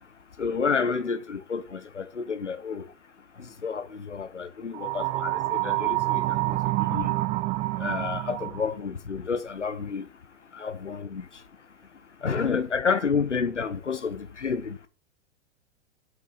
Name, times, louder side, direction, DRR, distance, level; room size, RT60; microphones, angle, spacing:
voice 1, 0.4-2.9 3.4-7.1 7.8-10.1 10.5-11.4 12.2-14.9, left 5 dB, 90° left, 1.1 m, -30 dB
sound 1, 4.7-8.7, right 19 dB, 25° right, 0.4 m, -27 dB
8.8 x 5.7 x 5.3 m
figure-of-eight pair, 105°, 35 cm